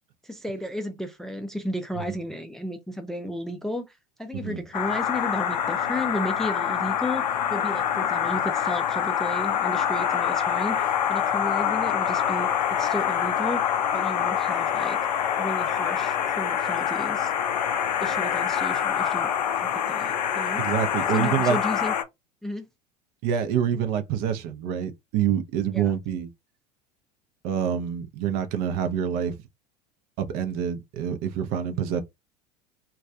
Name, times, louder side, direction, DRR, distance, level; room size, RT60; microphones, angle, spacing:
voice 1, 0.2-7.2 7.5-15.0 15.4-17.3 18.0-20.6 21.1-21.9 22.4-22.6 25.7-25.9, left 1 dB, ahead, 0.4 m, -33 dB
sound 1, 4.7-22.0, left 9 dB, 75° left, 0.5 m, -25 dB
voice 2, 20.6-21.6 23.2-26.3 27.4-29.4 30.2-32.0, right 9 dB, 50° right, 0.5 m, -26 dB
2.3 x 2.3 x 2.6 m
hypercardioid pair, 80°, 21 cm